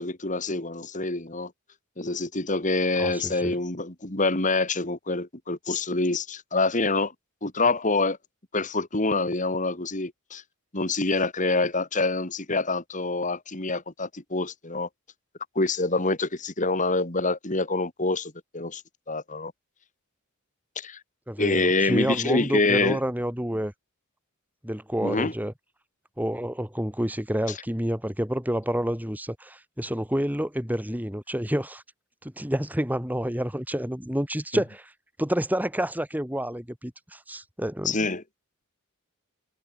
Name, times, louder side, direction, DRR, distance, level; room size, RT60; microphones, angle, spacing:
voice 1, 0.0-1.5 2.0-7.1 7.4-8.2 8.5-10.4 10.7-14.9 15.5-18.8 19.1-19.5 20.8-21.0 21.4-23.0 25.0-25.3 37.8-38.2, left 3 dB, 35° left, 2.7 m, -26 dB
voice 2, 3.0-3.5 21.3-23.7 24.6-25.5 26.2-31.8 32.2-34.8 35.2-38.0, equal, 10° right, 3.0 m, -29 dB
head